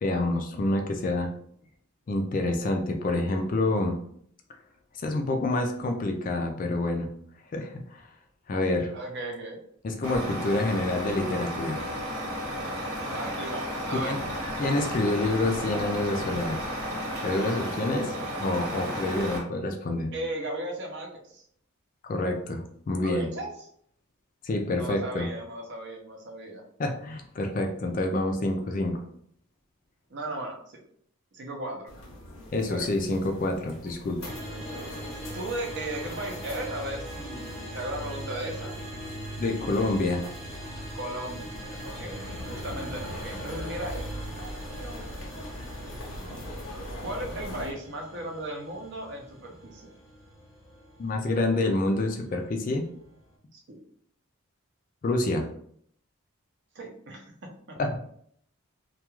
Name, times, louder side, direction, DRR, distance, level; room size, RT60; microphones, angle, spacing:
voice 1, 0.0-1.3 2.1-4.0 5.0-7.1 7.5-8.1 8.5-8.9 9.8-11.8 14.0-14.2 14.6-16.6 17.2-18.1 18.4-20.1 22.0-23.3 24.4-25.3 26.8-29.0 32.5-34.4 39.4-40.2 51.0-52.8 55.0-55.4 57.8-57.9, left 2 dB, 40° left, 4 dB, 0.3 m, -27 dB
voice 2, 8.9-9.6 13.1-14.2 17.6-18.6 20.1-21.4 23.0-23.5 24.8-26.6 30.1-30.8 31.3-31.9 32.7-32.9 35.3-38.8 40.9-44.2 47.0-49.9 53.5-53.8 56.7-57.3 57.7-57.8, right 1 dB, 55° right, 2 dB, 0.5 m, -36 dB
Truck, 10.0-19.4, equal, 85° right, 1.0 m, -33 dB
sound 1, 31.9-47.7, left 1 dB, 70° left, 0.7 m, -41 dB
sound 2, 34.2-53.3, right 1 dB, 5° right, 0.7 m, -42 dB
2.3 x 2.3 x 2.9 m, 0.65 s
head